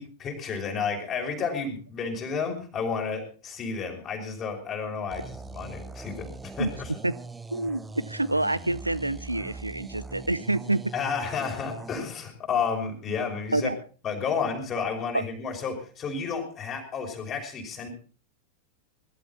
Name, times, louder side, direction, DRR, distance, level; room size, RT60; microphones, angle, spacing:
voice 1, 0.0-6.9 10.9-13.7 14.0-17.9, left 5 dB, 30° left, 3 dB, 5.6 m, -31 dB
sound 1, 5.1-12.0, right 3 dB, 10° right, 1.1 m, -41 dB
voice 2, 7.5-10.8 13.5-13.8, right 2 dB, 85° right, 17 dB, 0.7 m, -27 dB
21.5 x 12.5 x 4.3 m, 0.39 s
figure-of-eight pair, 90°, 0 cm